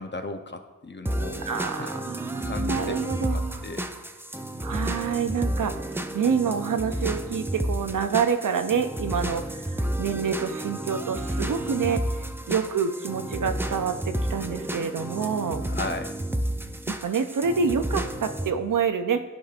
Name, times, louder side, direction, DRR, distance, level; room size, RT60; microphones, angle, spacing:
voice 1, 0.0-1.5 1.8-1.9 2.4-3.0 3.3-3.9 15.7-16.2, left 3 dB, 35° left, 6 dB, 0.6 m, -36 dB
sound 1, 1.1-18.5, right 1 dB, 5° right, 0.4 m, -31 dB
voice 2, 1.5-3.6 4.6-15.7 16.9-19.2, right 6 dB, 85° right, 8 dB, 0.5 m, -27 dB
13.0 x 4.9 x 2.4 m, 1.2 s
wide cardioid pair, 50°, 31 cm